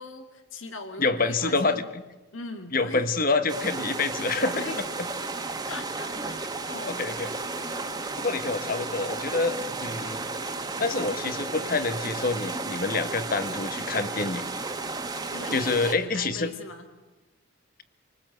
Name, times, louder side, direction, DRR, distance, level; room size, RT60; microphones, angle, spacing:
voice 1, 0.0-1.9 2.3-3.1 4.5-4.8 5.7-7.0 15.3-16.9, left 3 dB, 80° left, 6 dB, 2.2 m, -40 dB
voice 2, 1.0-2.0 2.7-4.6 6.9-7.3 8.2-10.2 10.8-14.4 15.5-16.5, left 3 dB, 45° left, 11 dB, 1.3 m, -27 dB
sound 1, 3.5-16.0, right 3 dB, 20° right, 1.6 m, -33 dB
27.5 x 19.0 x 7.9 m, 1.2 s
head